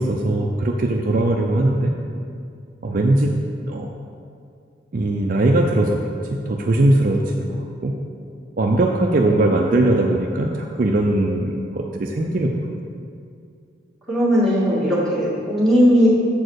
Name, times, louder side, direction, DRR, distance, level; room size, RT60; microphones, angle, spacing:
voice 1, 0.0-1.9 2.8-3.4 3.7-3.9 4.9-7.9 8.6-12.5, right 1 dB, 45° right, 1 dB, 0.4 m, -20 dB
voice 2, 8.7-9.1 14.1-16.1, equal, ahead, -9 dB, 2.0 m, -18 dB
7.5 x 4.4 x 6.3 m, 2.3 s
head